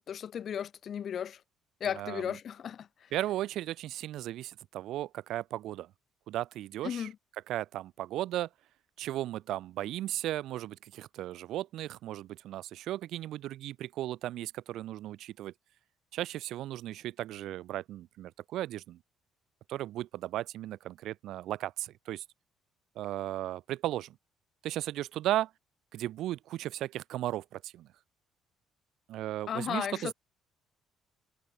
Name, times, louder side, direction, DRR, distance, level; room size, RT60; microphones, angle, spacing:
voice 1, 0.0-1.4 1.8-2.9 6.8-7.1 29.5-30.1, left 8 dB, 50° left, 5.7 m, -35 dB
voice 2, 1.9-2.4 3.1-5.9 6.3-7.1 7.5-8.5 9.0-15.5 16.1-19.0 19.7-22.2 23.0-24.1 24.6-25.5 25.9-27.9 29.1-30.1, right 14 dB, 75° right, 6.3 m, -36 dB
cardioid pair, 95°, 0 cm